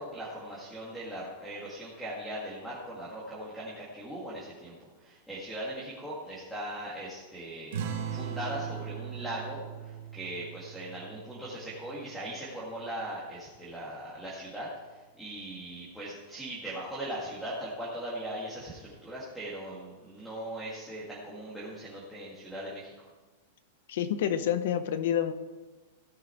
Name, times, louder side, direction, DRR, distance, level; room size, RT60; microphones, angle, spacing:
voice 1, 0.0-7.8 8.1-23.1, right 1 dB, ahead, -7 dB, 2.1 m, -39 dB
sound 1, 7.7-12.7, right 8 dB, 65° right, 2.0 m, -39 dB
voice 2, 23.9-25.3, left 10 dB, 65° left, 11 dB, 1.0 m, -28 dB
17.0 x 6.7 x 4.5 m, 1.2 s
supercardioid pair, 165°, 0 cm